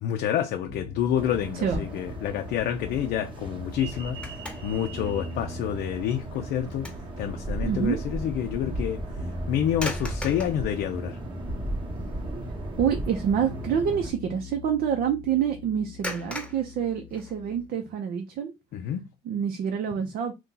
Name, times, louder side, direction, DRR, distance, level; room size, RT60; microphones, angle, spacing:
voice 1, 0.0-4.2 4.6-9.0 9.5-11.2 18.7-19.1, left 10 dB, 70° left, 0.4 m, -28 dB
sound 1, 0.7-17.7, left 1 dB, 50° left, 0.8 m, -43 dB
sound 2, 1.2-14.1, right 1 dB, 30° right, 0.9 m, -36 dB
sound 3, 3.7-4.9 5.3-5.5 6.1-7.1 7.5-7.6 9.7-10.6 11.5-11.6 11.9-12.3 12.5-12.8 16.0-17.6, left 1 dB, 5° left, 0.9 m, -38 dB
voice 2, 7.6-8.0 12.8-18.5 19.2-20.3, right 8 dB, 65° right, 0.6 m, -27 dB
2.8 x 2.2 x 3.7 m
cardioid pair, 110°, 17 cm